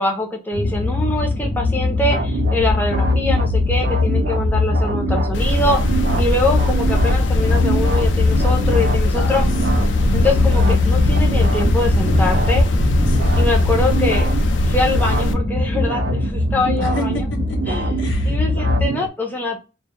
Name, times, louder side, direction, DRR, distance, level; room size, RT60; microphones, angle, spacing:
voice 1, 0.0-5.8 6.2-9.4 10.1-12.7 13.4-14.3 14.6-17.1 17.7-17.9 18.2-19.6, left 2 dB, 10° left, 0.4 m, -23 dB
sound 1, 0.5-18.9, left 3 dB, 50° left, 1.0 m, -20 dB
sound 2, 2.1-19.1, right 4 dB, 55° right, 0.3 m, -26 dB
sound 3, 5.3-15.3, left 1 dB, 70° left, 0.3 m, -22 dB
voice 2, 9.1-9.9 13.1-13.8 16.8-17.6 18.0-18.4, left 1 dB, 85° left, 0.8 m, -32 dB
2.1 x 2.0 x 2.9 m
head